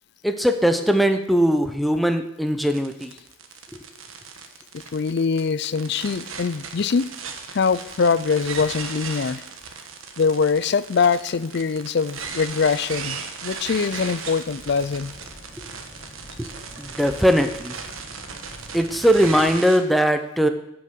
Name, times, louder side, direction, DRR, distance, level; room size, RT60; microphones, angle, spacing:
voice 1, 0.2-3.1 16.4-16.5 16.8-17.8 18.7-20.5, equal, ahead, 7 dB, 0.7 m, -20 dB
Glitch Audio, 2.7-19.8, right 5 dB, 80° right, 1.4 m, -36 dB
voice 2, 4.7-7.1 7.5-9.4 10.2-15.1, left 5 dB, 55° left, 17 dB, 0.4 m, -23 dB
sound 1, 14.5-19.5, equal, 20° left, 3.9 m, -45 dB
10.0 x 6.4 x 7.6 m, 0.82 s
head